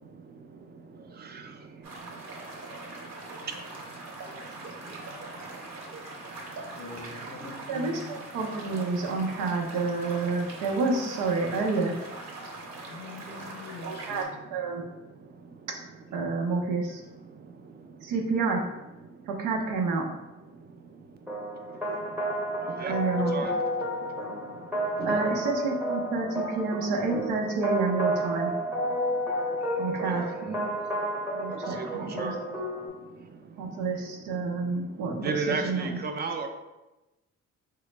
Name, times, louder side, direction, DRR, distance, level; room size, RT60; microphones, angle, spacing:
sound 1, 1.8-14.2, right 2 dB, 60° right, 0.9 m, -42 dB
voice 1, 6.8-8.1 12.9-14.3, left 3 dB, 35° left, 2 dB, 0.6 m, -43 dB
voice 2, 7.7-11.9 13.8-14.9 16.1-17.0 18.0-18.6 19.3-20.1 22.9-23.5 25.0-28.5 29.8-30.6 31.3-32.3 33.6-35.3 35.6-36.0, right 4 dB, 90° right, 2 dB, 0.6 m, -29 dB
sound 2, 21.3-32.9, equal, ahead, 0.7 m, -31 dB
voice 3, 31.5-32.4 35.2-36.5, right 4 dB, 35° right, 5 dB, 0.4 m, -33 dB
3.9 x 2.0 x 3.2 m, 1.0 s
cardioid pair, 90°, 30 cm